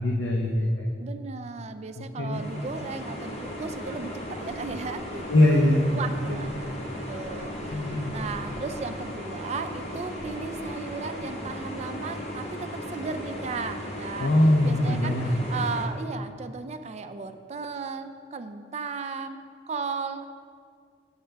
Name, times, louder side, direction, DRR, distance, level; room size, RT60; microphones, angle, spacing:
voice 1, 0.0-0.9 2.0-2.4 5.3-6.0 7.7-8.2 14.2-15.3, left 1 dB, 90° left, 0 dB, 0.6 m, -22 dB
voice 2, 1.0-14.3 14.6-19.4 19.7-20.3, right 4 dB, 35° right, 9 dB, 0.4 m, -36 dB
sound 1, 2.3-15.9, equal, 35° left, 1.0 m, -36 dB
8.0 x 7.5 x 3.4 m, 2.1 s
head